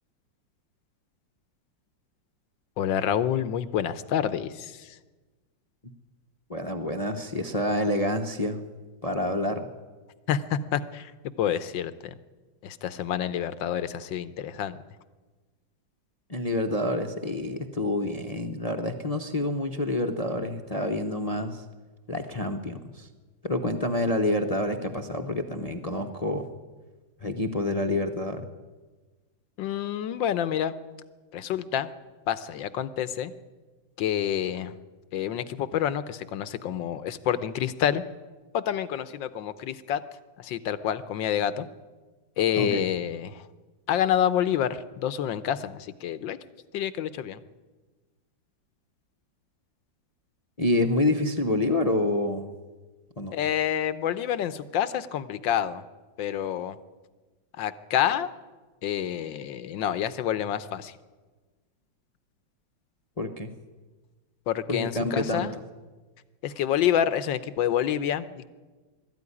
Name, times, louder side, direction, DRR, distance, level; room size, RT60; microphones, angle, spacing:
voice 1, 2.8-4.9 10.3-11.1 11.4-11.9 12.6-14.8 29.6-30.7 31.3-31.9 32.3-33.3 34.0-34.7 35.1-38.0 38.5-40.0 40.4-41.6 42.4-43.4 43.9-46.4 46.7-47.4 53.3-55.8 56.2-56.8 57.6-58.3 58.8-60.9 64.5-65.5 66.4-68.5, left 10 dB, 75° left, 14 dB, 1.6 m, -28 dB
voice 2, 6.5-8.6 9.0-9.7 16.3-21.6 22.1-23.1 23.4-26.5 27.2-28.5 42.6-42.8 50.6-52.5 53.2-53.3 63.2-63.5 64.7-65.5, left 1 dB, 25° left, 6 dB, 0.9 m, -27 dB
20.5 x 13.5 x 9.9 m, 1.3 s
omnidirectional pair, 2.1 m